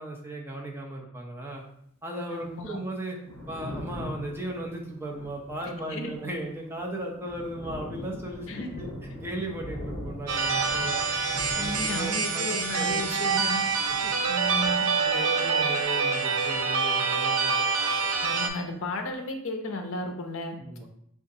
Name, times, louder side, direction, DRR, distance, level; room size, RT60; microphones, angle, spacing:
voice 1, 0.0-1.6 2.0-3.2 3.5-8.9 9.2-11.0 11.5-13.3 14.0-14.1 15.0-17.6 18.3-18.4 20.6-20.9, right 1 dB, 10° right, -2 dB, 0.5 m, -36 dB
voice 2, 2.3-2.8 5.9-6.1 8.5-8.7 11.5-13.6 14.3-14.8 18.2-20.6, left 2 dB, 60° left, 4 dB, 0.5 m, -34 dB
Thunder, 3.0-17.5 17.7-19.0, left 1 dB, 25° left, 0.9 m, -42 dB
sound 1, 10.3-18.5, right 5 dB, 75° right, 0.5 m, -26 dB
4.9 x 2.4 x 2.7 m, 0.71 s
head